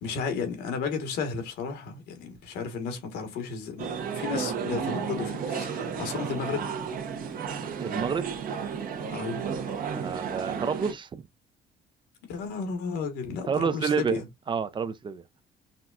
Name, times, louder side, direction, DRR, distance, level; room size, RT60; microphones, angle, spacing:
voice 1, 0.0-6.6 9.1-9.4 12.3-14.2, left 5 dB, 85° left, 1.4 m, -33 dB
sound 1, 3.8-10.9, right 6 dB, 55° right, 0.9 m, -33 dB
voice 2, 7.8-8.3 9.9-11.2 13.5-14.2 14.5-15.2, right 6 dB, 30° right, 0.4 m, -29 dB
5.8 x 2.3 x 2.3 m
cardioid pair, 110°, 17 cm